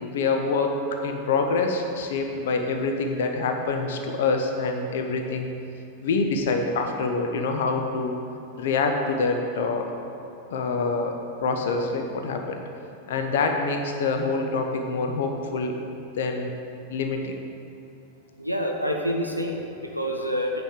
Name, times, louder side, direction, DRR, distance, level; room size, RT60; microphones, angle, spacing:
voice 1, 0.0-0.8 1.0-5.5 6.0-8.1 8.5-9.9 10.5-12.6 13.1-15.8 16.2-16.5 16.9-17.4, left 4 dB, 60° left, 4 dB, 0.8 m, -26 dB
voice 2, 18.4-20.6, equal, 90° left, 0 dB, 0.8 m, -27 dB
9.1 x 5.2 x 7.4 m, 2.7 s
figure-of-eight pair, 90°, 0 cm